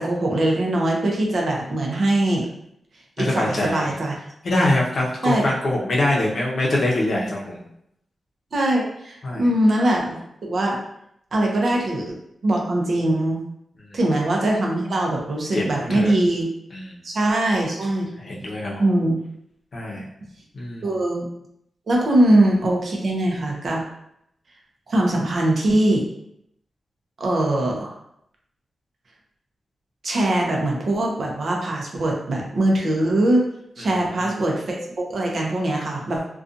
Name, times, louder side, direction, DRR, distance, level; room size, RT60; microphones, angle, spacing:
voice 1, 0.0-2.5 3.2-4.2 5.2-5.5 8.5-10.8 11.3-12.2 12.4-13.4 13.9-16.5 17.0-18.1 18.8-19.2 20.8-21.3 21.9-23.8 24.9-26.0 27.2-27.9 30.0-33.4 33.8-36.2, right 1 dB, 55° right, -1 dB, 0.5 m, -21 dB
voice 2, 3.2-3.9 4.4-7.6 9.2-9.4 13.9-14.0 15.5-15.6 15.9-16.1 16.7-16.9 18.2-18.8 19.7-20.0 20.5-20.9 33.8-34.0, left 1 dB, 55° left, -3 dB, 0.6 m, -24 dB
2.5 x 2.3 x 2.5 m, 0.75 s
wide cardioid pair, 120°, 0 cm